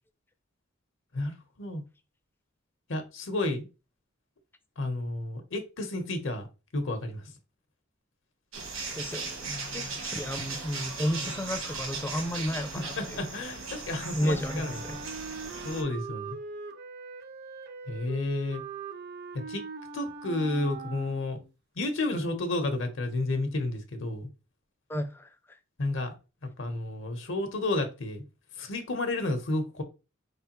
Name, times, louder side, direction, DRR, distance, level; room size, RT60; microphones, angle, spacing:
voice 1, 1.1-1.8 2.9-3.7 4.8-6.5 6.7-7.2 9.4-10.0 12.7-14.8 15.6-16.4 17.9-18.6 19.5-19.6 19.9-21.4 21.8-24.3 25.8-26.1 26.6-28.2 28.6-29.8, left 2 dB, 70° left, 6 dB, 0.9 m, -31 dB
sound 1, 8.5-15.8, right 4 dB, 70° right, 1.3 m, -38 dB
voice 2, 9.0-13.3 14.1-15.0 24.9-25.3, equal, 10° left, 9 dB, 0.4 m, -32 dB
Wind instrument woodwind instrument, 14.1-21.5, right 4 dB, 55° right, 0.5 m, -41 dB
4.4 x 3.4 x 2.9 m, 0.30 s
head